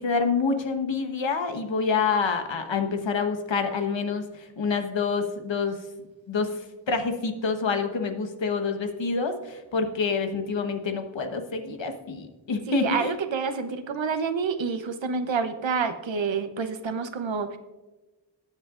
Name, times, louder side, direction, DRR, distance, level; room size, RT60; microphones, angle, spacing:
voice 1, 0.0-4.2 4.6-5.8 6.3-6.5 6.9-13.1, left 4 dB, 80° left, 6 dB, 1.3 m, -27 dB
voice 2, 12.7-17.6, right 5 dB, 85° right, 9 dB, 0.9 m, -28 dB
19.5 x 7.6 x 2.5 m, 1.2 s
wide cardioid pair, 110°, 44 cm